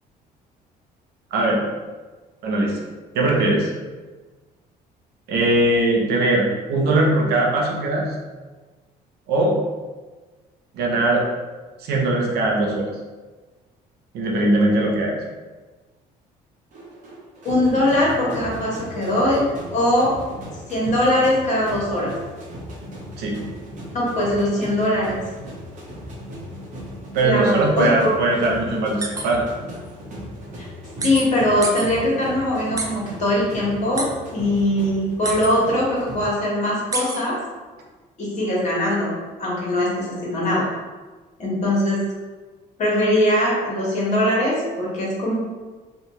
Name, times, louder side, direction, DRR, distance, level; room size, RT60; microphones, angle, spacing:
voice 1, 1.3-1.6 2.4-2.8 3.1-3.7 5.3-8.0 9.3-9.6 10.7-11.2 11.8-12.9 14.1-15.1 23.2-23.4 27.1-29.4, right 2 dB, 70° right, -1 dB, 0.7 m, -20 dB
sound 1, 16.7-36.3, equal, 50° right, 0.9 m, -37 dB
voice 2, 17.4-19.4 19.7-20.1 20.7-22.1 23.9-25.2 27.2-28.1 31.0-37.4 38.2-39.1 39.4-40.7 41.4-42.0 42.8-45.3, left 1 dB, 45° left, -5 dB, 1.2 m, -21 dB
sound 2, 29.0-29.2 29.7-29.8 31.0-31.2 31.6-31.9 32.8-32.9 34.0-34.1 35.2-35.5 36.9-37.2, right 3 dB, 20° right, 0.4 m, -26 dB
2.8 x 2.3 x 3.0 m, 1.3 s
cardioid pair, 110°, 17 cm